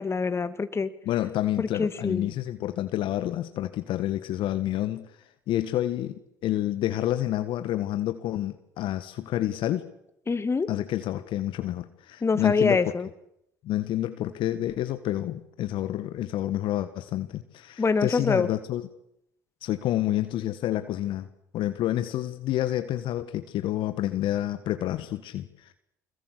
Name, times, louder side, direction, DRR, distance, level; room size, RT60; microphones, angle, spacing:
voice 1, 0.0-0.9 1.6-2.3 10.3-10.7 12.2-13.1 17.8-18.5, left 4 dB, 30° left, 11 dB, 2.4 m, -25 dB
voice 2, 1.0-5.1 5.5-9.9 10.7-12.8 13.6-18.9 19.6-21.3 21.5-25.5, left 13 dB, 60° left, 10 dB, 1.6 m, -29 dB
25.5 x 21.5 x 8.3 m, 0.79 s
hypercardioid pair, 60°, 9 cm